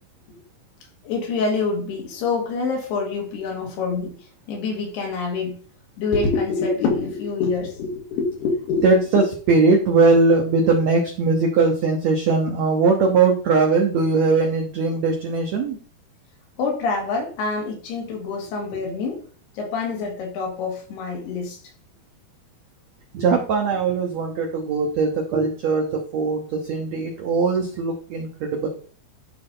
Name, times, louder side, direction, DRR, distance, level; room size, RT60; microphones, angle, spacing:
voice 1, 1.0-4.2 4.5-5.6 6.0-8.9 16.6-19.2 19.6-21.6, left 4 dB, 85° left, 3.9 m, -26 dB
voice 2, 8.8-9.2 9.5-15.8 23.1-28.7, right 4 dB, 90° right, 1.5 m, -20 dB
11.0 x 3.9 x 3.8 m
omnidirectional pair, 4.5 m